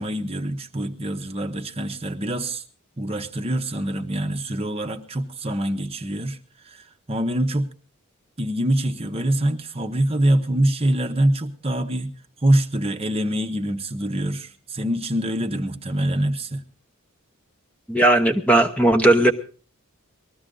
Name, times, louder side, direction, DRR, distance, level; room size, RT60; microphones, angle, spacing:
voice 1, 0.0-2.6 3.0-6.4 6.6-7.7 8.4-12.1 12.4-16.6, right 1 dB, 25° right, 1.0 m, -24 dB
voice 2, 17.9-19.3, right 1 dB, 5° left, 0.9 m, -17 dB
20.0 x 14.0 x 3.8 m
head